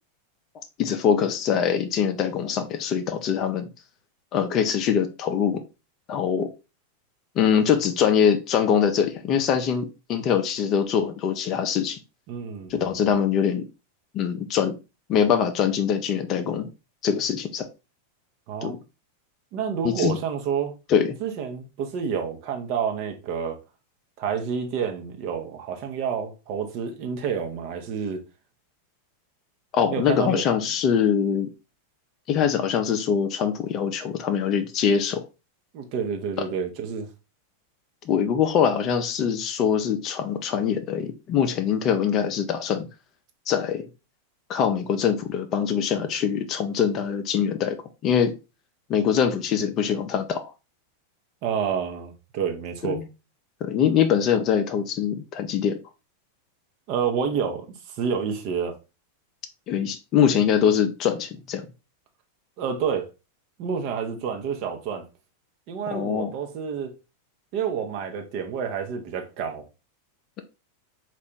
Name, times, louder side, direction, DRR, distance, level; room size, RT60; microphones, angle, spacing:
voice 1, 0.8-3.7 4.3-5.6 6.1-6.5 7.4-12.0 12.7-13.7 14.1-14.8 15.1-16.7 17.0-17.7 18.6-18.8 20.0-20.2 20.9-21.2 29.7-31.5 32.3-35.2 38.0-42.9 43.5-43.9 44.5-47.8 48.0-48.3 48.9-50.5 52.8-53.1 53.6-55.8 59.7-61.6 65.9-66.3, left 8 dB, 35° left, 0.5 m, -23 dB
voice 2, 12.3-13.2 18.5-18.8 19.5-20.7 21.2-23.6 24.2-28.2 29.9-30.4 35.7-37.1 51.4-53.0 56.9-58.8 62.6-63.1 63.6-65.0 65.7-66.9 67.5-69.7, right 7 dB, 45° right, 0.8 m, -29 dB
4.4 x 2.5 x 3.4 m
figure-of-eight pair, 90°, 0 cm